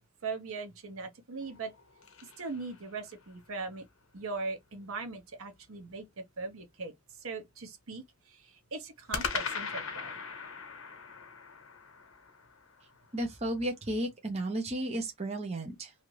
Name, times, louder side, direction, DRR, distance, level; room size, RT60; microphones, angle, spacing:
voice 1, 0.2-1.7 2.2-3.8 4.1-6.1 6.4-6.9 7.2-10.2, right 4 dB, 70° right, 0.8 m, -40 dB
sound 1, 1.4-3.3 9.1-13.4, left 5 dB, 65° left, 0.9 m, -40 dB
voice 2, 13.1-15.9, right 1 dB, 30° right, 0.6 m, -33 dB
2.8 x 2.4 x 3.1 m
head